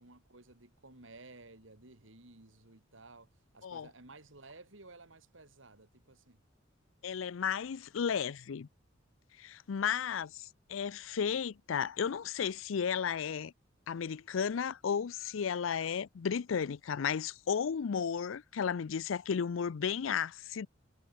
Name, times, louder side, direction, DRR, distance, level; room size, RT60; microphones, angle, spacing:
voice 1, 0.0-6.4, right 2 dB, 75° right, 3.4 m, -55 dB
voice 2, 7.0-8.7 9.4-13.5 13.9-20.7, left 7 dB, 85° left, 0.5 m, -34 dB
head